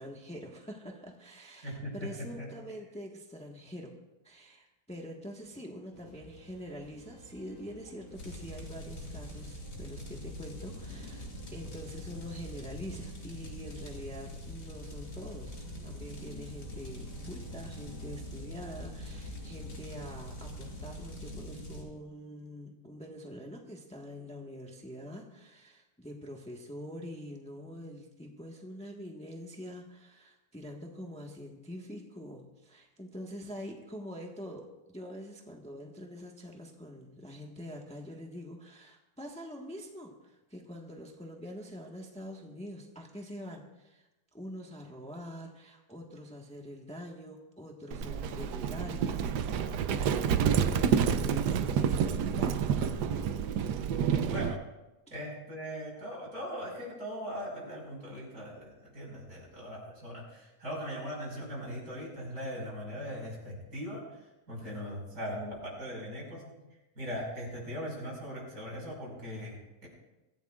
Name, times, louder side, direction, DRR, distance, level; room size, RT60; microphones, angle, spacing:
voice 1, 0.0-3.9 4.2-49.7 50.1-53.3, equal, 5° left, 0 dB, 1.4 m, -45 dB
voice 2, 1.6-2.5 54.1-54.6 55.1-66.5 66.9-69.9, equal, 65° right, -3 dB, 6.4 m, -40 dB
sound 1, 5.9-21.1, equal, 60° left, 5.7 m, -54 dB
sound 2, 8.1-21.8, equal, 85° left, 3.8 m, -43 dB
Livestock farm animals working animals, 47.9-54.6, right 7 dB, 90° right, 1.3 m, -29 dB
24.0 x 16.0 x 2.5 m, 1.0 s
omnidirectional pair, 1.7 m